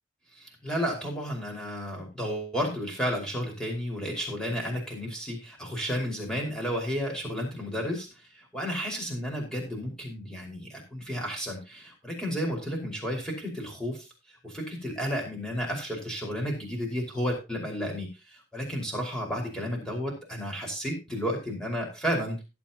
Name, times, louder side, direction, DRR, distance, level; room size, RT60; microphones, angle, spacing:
voice 1, 0.3-14.1 14.4-22.4, equal, 5° left, 0 dB, 5.3 m, -32 dB
18.0 x 8.7 x 3.0 m, 0.29 s
head